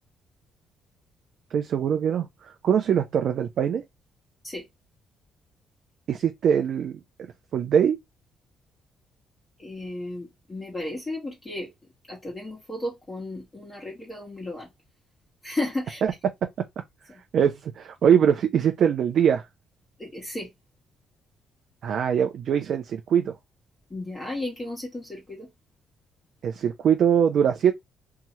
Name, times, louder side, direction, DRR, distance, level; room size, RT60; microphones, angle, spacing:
voice 1, 1.5-3.8 6.1-7.0 7.5-8.0 16.0-16.1 17.3-19.4 21.8-23.3 26.4-27.7, right 8 dB, 65° right, 0.4 m, -22 dB
voice 2, 9.6-11.7 12.1-14.6 15.4-16.0 20.1-20.5 23.9-25.0 25.3-25.4, left 1 dB, 25° left, 1.3 m, -33 dB
2.8 x 2.3 x 3.0 m
cardioid pair, 90°, 0 cm